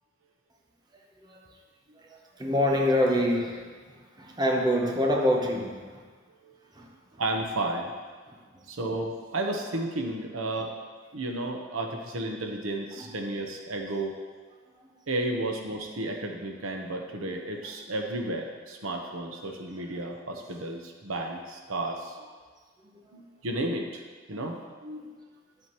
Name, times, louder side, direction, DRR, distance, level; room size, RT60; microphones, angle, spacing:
voice 1, 1.9-6.1 6.7-7.2 8.3-8.6 13.0-13.1 14.8-14.9 22.9-23.0, left 1 dB, 20° right, 0 dB, 0.8 m, -27 dB
voice 2, 7.2-7.9 8.7-10.7 11.1-14.2 15.1-22.4 23.1-24.0 24.3-25.1, right 2 dB, 85° right, 2 dB, 1.0 m, -33 dB
10.5 x 7.8 x 3.0 m, 1.5 s
head